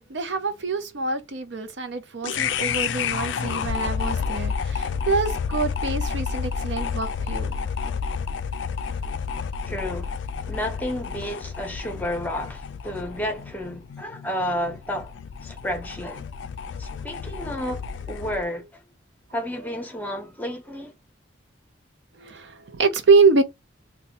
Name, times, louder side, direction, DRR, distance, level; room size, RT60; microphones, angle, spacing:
voice 1, 0.1-7.5 22.2-23.4, right 4 dB, 65° right, 0.6 m, -24 dB
sound 1, 2.2-18.4, left 6 dB, 70° left, 0.3 m, -30 dB
voice 2, 9.7-10.2 10.5-15.1 15.4-16.2 16.8-18.6 19.3-20.9, equal, 10° left, 0.7 m, -31 dB
2.7 x 2.2 x 4.1 m
head